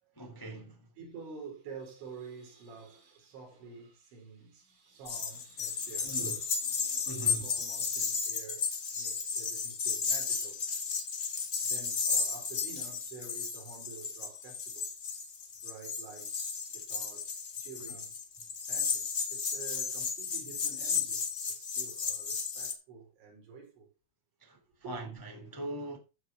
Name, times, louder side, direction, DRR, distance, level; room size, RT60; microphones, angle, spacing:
voice 1, 0.1-0.9 6.0-6.3 7.0-7.5 17.9-18.0 24.4-24.6 24.8-26.0, right 2 dB, 20° left, 0.6 m, -41 dB
voice 2, 1.0-8.7 8.9-10.8 11.6-15.0 15.6-18.1 18.7-21.2 21.5-23.9 24.8-24.9, right 5 dB, 65° right, 6.2 m, -49 dB
sound 1, 5.0-22.7, left 5 dB, 85° left, 0.9 m, -34 dB
14.5 x 4.9 x 5.9 m
omnidirectional pair, 5.9 m